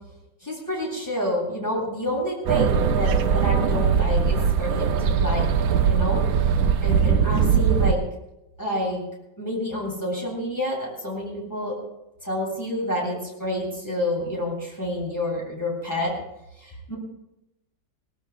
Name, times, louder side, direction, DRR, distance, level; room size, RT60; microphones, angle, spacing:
voice 1, 0.4-6.5 6.8-8.0 8.6-9.0 9.4-11.8 12.2-16.1 16.6-17.0, left 1 dB, 10° left, -4 dB, 7.4 m, -28 dB
sound 1, 2.5-7.9, right 7 dB, 65° right, 1.0 m, -21 dB
24.0 x 18.5 x 2.4 m, 0.89 s
omnidirectional pair, 2.0 m